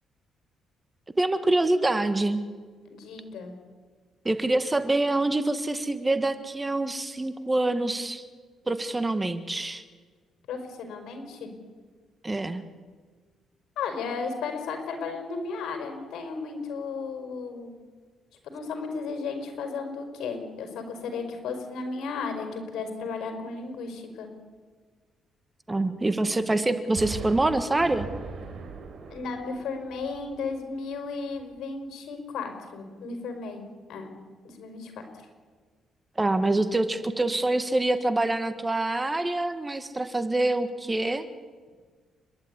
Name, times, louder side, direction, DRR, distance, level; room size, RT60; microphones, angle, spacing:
voice 1, 1.2-2.4 4.2-8.2 8.7-9.8 12.2-12.6 25.7-28.1 36.2-41.2, right 2 dB, 15° right, 11 dB, 1.5 m, -25 dB
voice 2, 2.9-3.5 10.5-11.5 13.8-17.7 18.4-24.3 29.1-33.6 33.9-34.1 34.4-34.9, left 4 dB, 75° left, 5 dB, 5.0 m, -34 dB
Explosion, 27.0-30.9 31.3-31.4, right 5 dB, 65° right, 4.3 m, -40 dB
30.0 x 11.5 x 9.7 m, 1.5 s
cardioid pair, 90°, 0 cm